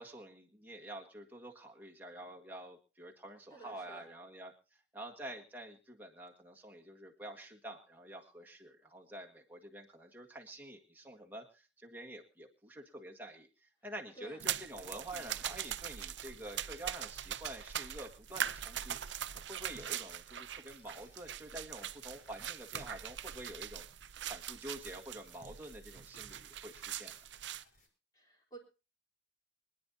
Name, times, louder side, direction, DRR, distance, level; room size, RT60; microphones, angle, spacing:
voice 1, 0.0-4.5 4.9-23.8 24.3-27.1, right 1 dB, 10° right, 0 dB, 1.7 m, -48 dB
voice 2, 3.5-4.1 14.1-14.5 15.1-15.5 28.1-28.6, right 3 dB, 20° left, 0 dB, 3.8 m, -53 dB
sound 1, 14.4-27.6, right 10 dB, 75° right, 0.6 m, -42 dB
sound 2, 18.2-27.9, left 2 dB, 45° left, 5.8 m, -69 dB
25.5 x 9.8 x 2.8 m, 0.32 s
head